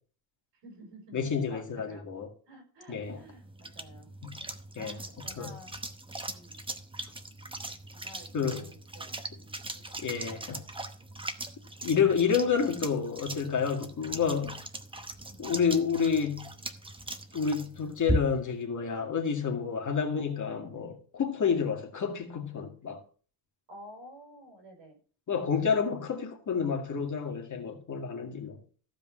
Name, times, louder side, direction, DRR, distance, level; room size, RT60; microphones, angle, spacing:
voice 1, 0.6-2.1 2.5-4.1 4.8-5.8 6.3-6.6 7.9-9.6 9.9-10.5 12.4-12.5 14.5-14.6 15.3-15.4 16.1-16.3 23.7-25.0, equal, 65° right, 5.1 m, -51 dB
voice 2, 1.1-2.3 2.9-3.2 4.2-4.4 4.8-4.9 5.4-5.5 8.3-8.7 10.0-10.6 11.8-14.6 15.4-16.5 17.3-23.0 25.3-28.6, left 6 dB, 40° left, 2.2 m, -29 dB
sound 1, 3.0-18.6, right 1 dB, 10° right, 0.9 m, -39 dB
15.0 x 5.2 x 6.3 m
cardioid pair, 155°, 47 cm